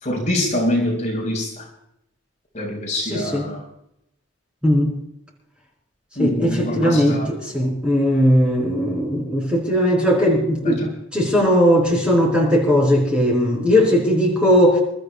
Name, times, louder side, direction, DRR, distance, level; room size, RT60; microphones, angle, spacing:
voice 1, 0.0-1.6 2.5-3.6 6.2-7.3 10.6-10.9, left 1 dB, 35° left, -1 dB, 4.1 m, -24 dB
voice 2, 3.0-3.5 4.6-4.9 6.2-14.8, equal, 5° right, -1 dB, 4.4 m, -18 dB
29.5 x 13.5 x 2.2 m, 0.78 s
head